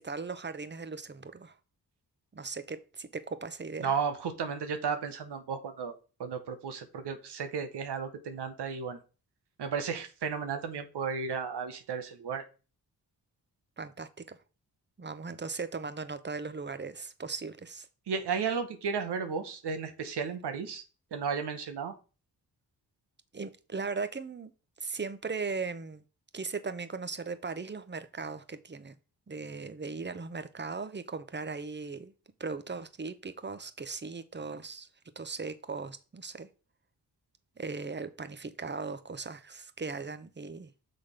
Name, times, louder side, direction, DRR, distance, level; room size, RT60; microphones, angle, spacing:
voice 1, 0.0-1.5 2.3-3.9 13.8-14.4 15.0-17.9 23.3-24.5 24.8-26.0 26.3-28.9 29.3-32.1 32.4-34.9 35.2-36.5 37.6-40.7, right 4 dB, 25° right, 0.8 m, -38 dB
voice 2, 3.8-5.9 6.2-9.0 9.6-12.4 18.1-20.8 21.1-21.9, right 6 dB, 80° right, 1.0 m, -34 dB
6.4 x 3.9 x 5.0 m
cardioid pair, 55°, 40 cm